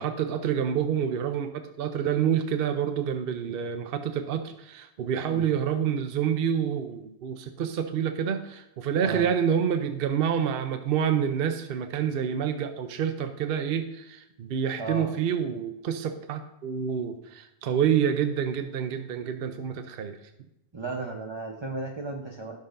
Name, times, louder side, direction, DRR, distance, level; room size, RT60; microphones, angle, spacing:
voice 1, 0.0-20.2, right 8 dB, 60° right, 8 dB, 0.8 m, -28 dB
voice 2, 9.0-9.4 14.8-15.1 20.7-22.6, right 3 dB, 25° right, 1 dB, 0.9 m, -35 dB
16.0 x 6.6 x 2.6 m, 0.87 s
omnidirectional pair, 1.1 m